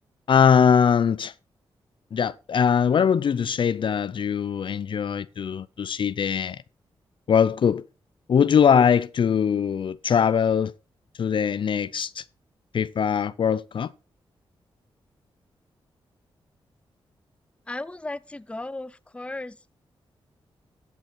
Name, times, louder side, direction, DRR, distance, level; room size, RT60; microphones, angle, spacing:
voice 1, 0.3-1.3 2.1-6.6 7.3-7.9 8.3-10.7 11.2-12.2 12.7-13.9, left 7 dB, 60° left, 0.5 m, -21 dB
voice 2, 17.7-19.8, left 2 dB, 10° left, 0.5 m, -36 dB
14.0 x 7.0 x 4.5 m
cardioid pair, 70°, 10 cm